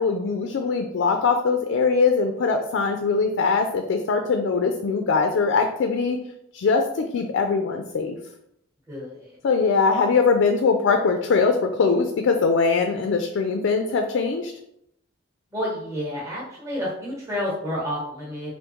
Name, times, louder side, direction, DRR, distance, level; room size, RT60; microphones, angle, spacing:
voice 1, 0.0-6.2 6.5-8.2 9.4-14.5, left 4 dB, 75° left, 5 dB, 0.3 m, -22 dB
voice 2, 8.9-9.4 15.5-18.5, left 1 dB, 15° right, -5 dB, 1.0 m, -30 dB
3.5 x 2.6 x 2.9 m, 0.76 s
head